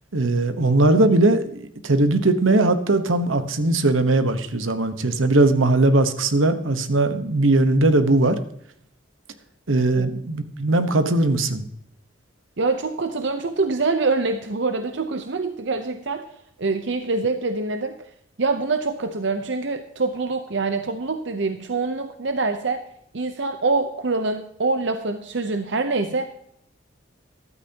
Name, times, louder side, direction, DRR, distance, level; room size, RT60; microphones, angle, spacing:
voice 1, 0.1-8.4 9.7-11.7, right 2 dB, 80° right, 10 dB, 1.2 m, -19 dB
voice 2, 12.6-16.3 16.6-18.0 18.4-22.8 23.1-26.3, right 3 dB, 60° right, 7 dB, 0.8 m, -25 dB
14.0 x 12.5 x 2.9 m, 0.72 s
head